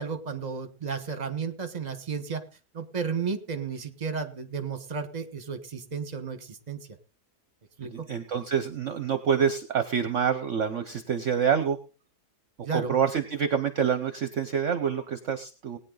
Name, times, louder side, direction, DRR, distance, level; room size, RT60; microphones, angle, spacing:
voice 1, 0.0-2.4 2.7-6.9 7.8-8.1 12.6-13.0, right 5 dB, 25° right, 9 dB, 1.4 m, -33 dB
voice 2, 7.8-11.8 12.6-15.8, right 7 dB, 55° right, 9 dB, 1.1 m, -27 dB
19.0 x 9.7 x 3.9 m, 0.35 s
omnidirectional pair, 1.7 m